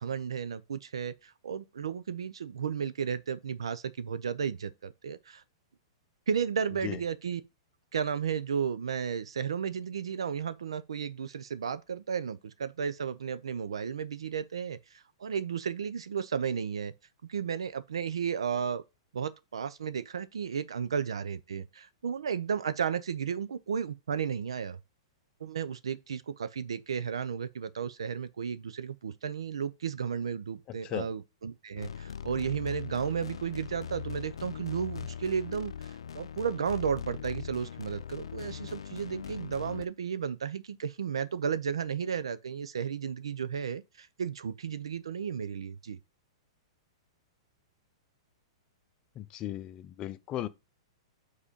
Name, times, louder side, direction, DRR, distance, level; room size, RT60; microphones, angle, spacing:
voice 1, 0.0-5.4 6.3-7.4 7.9-16.9 17.2-18.8 19.1-24.8 25.4-35.7 36.1-46.0, right 7 dB, 85° right, 0.6 m, -33 dB
sound 1, 31.8-39.9, left 7 dB, 85° left, 0.5 m, -40 dB
voice 2, 49.2-50.5, left 13 dB, 30° left, 0.6 m, -36 dB
5.1 x 4.1 x 5.0 m
hypercardioid pair, 120°, 3 cm